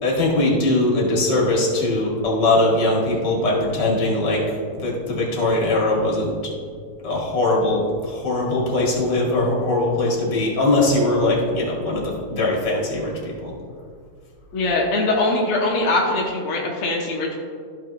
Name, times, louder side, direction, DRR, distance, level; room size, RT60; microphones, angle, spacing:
voice 1, 0.0-4.4 4.8-6.3 7.0-13.5, left 2 dB, 40° left, -3 dB, 1.8 m, -21 dB
voice 2, 14.5-17.3, left 2 dB, 85° left, -2 dB, 1.2 m, -22 dB
14.5 x 6.1 x 2.9 m, 2.1 s
omnidirectional pair, 4.0 m